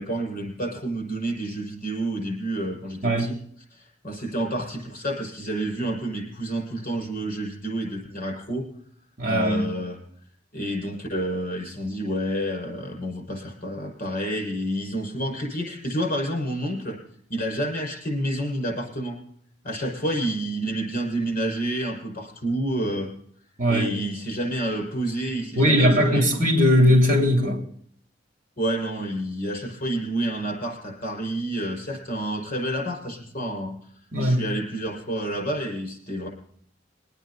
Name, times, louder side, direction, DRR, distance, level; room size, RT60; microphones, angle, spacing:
voice 1, 0.0-3.4 3.7-8.7 9.3-10.0 10.5-17.0 17.3-19.2 19.6-23.1 23.7-26.3 28.6-33.7 34.2-36.3, right 1 dB, 50° left, 5.9 m, -29 dB
voice 2, 9.2-9.7 23.6-23.9 25.6-27.6 34.1-34.4, equal, 45° right, 3.3 m, -19 dB
23.0 x 9.2 x 4.1 m
head